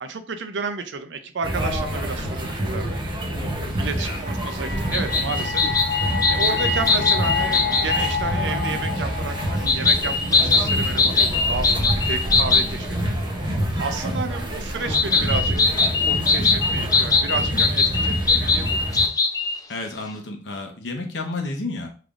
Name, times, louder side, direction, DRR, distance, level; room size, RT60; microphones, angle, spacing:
voice 1, 0.0-3.0 3.8-5.7 6.3-13.2 13.8-15.7 16.1-18.9, right 4 dB, 80° right, 8 dB, 0.5 m, -31 dB
sound 1, 1.4-19.1, equal, 25° right, 0.8 m, -27 dB
sound 2, 4.0-11.1, left 5 dB, 40° left, 0.8 m, -30 dB
sound 3, 4.9-8.1 9.7-12.7 14.9-19.6, left 4 dB, 20° left, 0.4 m, -21 dB
voice 2, 19.7-21.9, left 3 dB, 75° left, 3 dB, 0.9 m, -31 dB
3.7 x 3.3 x 2.5 m, 0.38 s
head